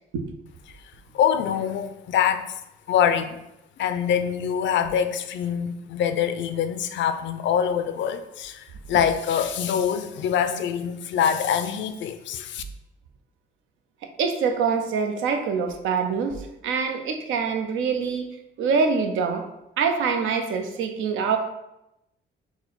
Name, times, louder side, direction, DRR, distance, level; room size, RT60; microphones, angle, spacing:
voice 1, 1.1-2.5 2.9-3.4 3.8-12.6, left 8 dB, 70° left, 10 dB, 0.4 m, -24 dB
voice 2, 14.2-16.4 16.6-18.2 18.6-19.4 19.8-21.4, right 5 dB, 80° right, 5 dB, 0.6 m, -24 dB
4.7 x 2.1 x 3.9 m, 0.88 s
cardioid pair, 90°, 20 cm